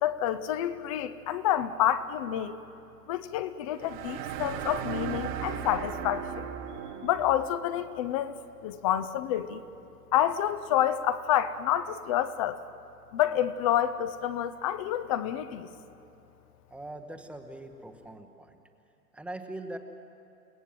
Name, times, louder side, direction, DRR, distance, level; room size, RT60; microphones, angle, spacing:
voice 1, 0.0-2.6 3.1-6.5 7.0-9.6 10.1-12.6 13.1-15.7, left 11 dB, 20° left, 13 dB, 0.6 m, -28 dB
sound 1, 3.8-7.5, right 8 dB, 30° right, 1.3 m, -36 dB
voice 2, 16.7-18.6 19.1-19.8, right 2 dB, 5° right, 6 dB, 0.9 m, -41 dB
29.5 x 17.5 x 7.6 m, 2.8 s
figure-of-eight pair, 120°, 48 cm